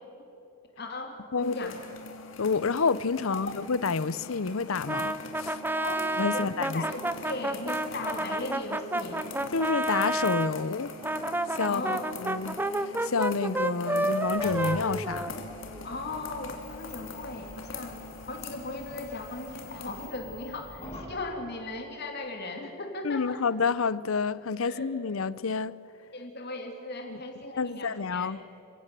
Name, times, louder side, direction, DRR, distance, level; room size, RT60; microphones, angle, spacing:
voice 1, 0.8-1.8 5.8-6.0 6.3-6.5 6.7-9.2 11.6-12.0 15.8-23.4 24.6-24.9 26.1-28.3, left 2 dB, 50° left, 2.9 m, -37 dB
voice 2, 1.3-1.7 2.4-5.6 6.2-6.9 9.5-10.9 11.6-12.6 13.0-15.3 23.0-25.7 27.6-28.4, left 5 dB, 85° left, 0.7 m, -29 dB
sound 1, 1.4-20.1, left 3 dB, 65° left, 2.6 m, -43 dB
Brass instrument, 4.9-10.5 11.0-15.8, right 1 dB, 10° right, 0.7 m, -30 dB
sound 2, 14.2-21.2, left 1 dB, 25° left, 7.6 m, -45 dB
28.0 x 16.5 x 7.6 m
head